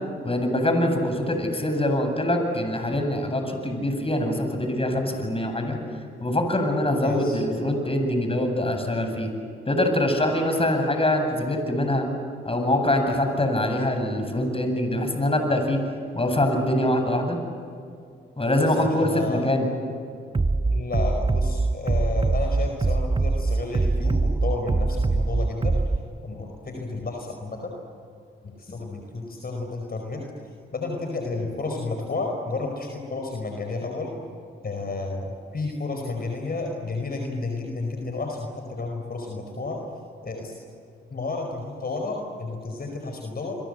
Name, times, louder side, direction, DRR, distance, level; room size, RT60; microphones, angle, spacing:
voice 1, 0.2-5.8 6.2-9.3 9.7-12.1 12.4-15.8 16.1-17.4 18.4-19.7, left 1 dB, 25° left, 5 dB, 7.8 m, -24 dB
voice 2, 7.0-7.4 18.6-19.4 20.7-25.8 26.2-27.7 28.4-30.2 30.7-34.1 34.6-39.8 40.2-40.5 41.1-43.6, left 3 dB, 45° left, 2 dB, 5.1 m, -31 dB
Bass drum, 20.3-26.0, right 3 dB, 25° right, 1.1 m, -23 dB
28.5 x 24.0 x 7.9 m, 2.4 s
supercardioid pair, 45°, 21 cm